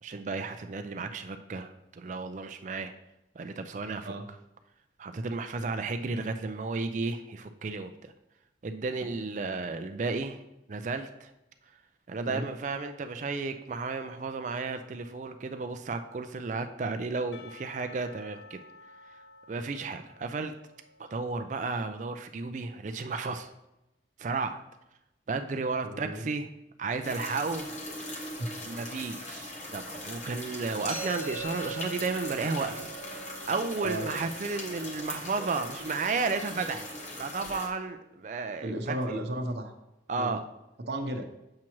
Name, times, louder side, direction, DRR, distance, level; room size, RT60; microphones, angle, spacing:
voice 1, 0.0-2.9 3.4-4.1 5.0-8.1 8.6-10.4 10.7-11.3 12.1-18.6 19.5-20.5 21.1-23.5 24.2-24.6 25.3-26.5 26.8-27.7 28.6-32.9 33.5-36.9 37.2-39.0 40.1-40.4, right 4 dB, 45° right, 8 dB, 0.4 m, -33 dB
Percussion, 17.3-22.2, left 3 dB, 80° left, 0.5 m, -53 dB
voice 2, 25.8-26.3 28.4-28.5 33.8-34.0 38.6-39.7 40.2-40.4 40.9-41.3, right 1 dB, 75° right, 5 dB, 0.8 m, -33 dB
sound 1, 27.0-37.7, left 1 dB, 40° left, 1.1 m, -40 dB
sound 2, 30.9-36.7, right 4 dB, 10° right, 1.7 m, -42 dB
7.5 x 5.8 x 3.0 m, 0.91 s
head